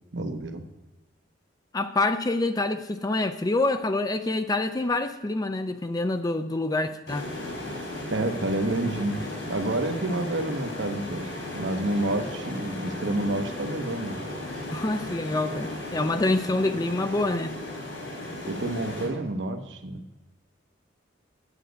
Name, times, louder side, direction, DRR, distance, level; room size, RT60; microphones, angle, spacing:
voice 1, 0.1-0.6 8.1-14.3 16.4-16.5 18.5-20.0, right 1 dB, 70° right, 6 dB, 1.0 m, -29 dB
voice 2, 1.7-7.3 14.7-17.6, left 2 dB, 20° left, 9 dB, 0.4 m, -26 dB
sound 1, 7.1-19.1, left 1 dB, 90° left, 4.1 m, -36 dB
10.0 x 8.1 x 5.1 m, 1.1 s
head